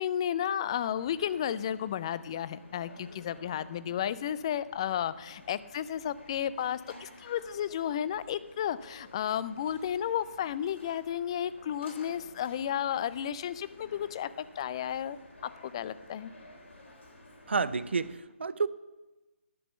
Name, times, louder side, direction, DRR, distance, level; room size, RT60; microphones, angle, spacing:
voice 1, 0.0-14.3 14.6-15.2 15.6-16.3, left 10 dB, 25° left, 16 dB, 0.3 m, -33 dB
sound 1, 0.9-18.1, left 1 dB, 60° left, 3.1 m, -54 dB
voice 2, 17.5-18.7, right 4 dB, 55° right, 17 dB, 0.5 m, -30 dB
11.0 x 6.0 x 6.8 m, 1.1 s
figure-of-eight pair, 140°, 7 cm